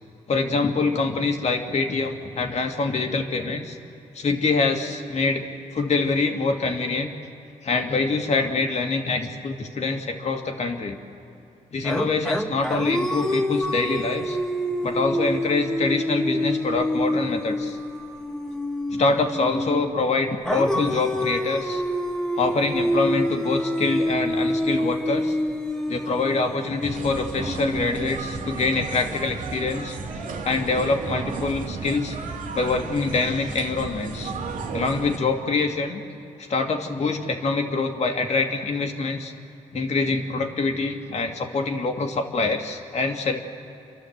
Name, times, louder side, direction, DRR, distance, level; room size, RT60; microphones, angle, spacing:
voice 1, 0.3-3.8 4.1-5.5 5.7-7.1 7.6-11.0 11.7-14.4 14.8-17.8 18.9-21.8 22.4-25.4 25.9-30.0 30.4-32.2 32.5-34.3 34.7-36.0 36.5-39.3 39.7-43.4, left 3 dB, 55° left, 4 dB, 2.1 m, -25 dB
sound 1, 11.8-19.9 20.5-28.5, equal, 5° left, 1.7 m, -27 dB
sound 2, 26.8-35.2, right 4 dB, 85° right, 2.0 m, -33 dB
28.0 x 12.0 x 8.0 m, 2.9 s
cardioid pair, 70°, 14 cm